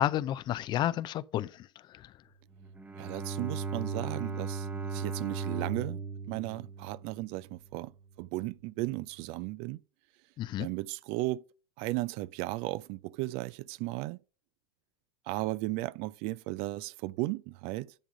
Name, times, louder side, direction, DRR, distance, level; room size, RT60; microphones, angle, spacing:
voice 1, 0.0-2.1 10.4-10.7, left 12 dB, 35° left, 0.5 m, -31 dB
Bowed string instrument, 2.5-7.7, right 5 dB, 10° right, 1.0 m, -37 dB
voice 2, 3.0-6.0 6.3-7.9 8.2-9.8 10.6-11.4 11.8-14.2 15.3-17.9, right 19 dB, 45° right, 0.4 m, -35 dB
10.5 x 3.7 x 6.3 m
hypercardioid pair, 95°, 14 cm